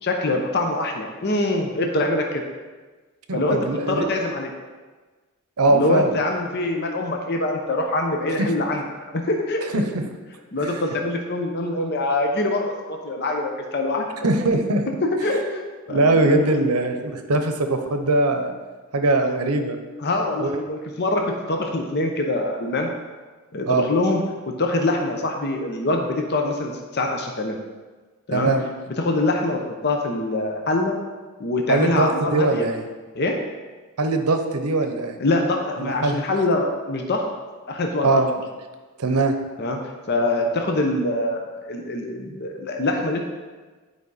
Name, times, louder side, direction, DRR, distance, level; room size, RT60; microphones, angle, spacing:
voice 1, 0.0-2.4 3.3-3.6 3.9-4.5 5.7-9.9 10.5-14.3 15.1-16.5 20.0-21.2 21.5-22.9 23.5-27.6 28.3-28.5 29.0-31.0 31.4-32.7 33.1-33.3 35.2-37.3 37.7-38.2 39.6-39.8 40.1-43.2, left 2 dB, 45° left, 2 dB, 0.7 m, -24 dB
voice 2, 3.3-4.0 5.6-6.1 8.4-8.5 9.7-10.0 10.6-10.7 14.2-14.8 15.9-18.5 18.9-19.8 20.4-20.6 23.7-23.9 28.3-28.6 31.7-32.8 34.0-35.2 35.8-36.2 38.0-38.3 39.0-39.4, right 2 dB, 85° right, 6 dB, 0.8 m, -21 dB
9.9 x 4.8 x 4.1 m, 1.3 s
head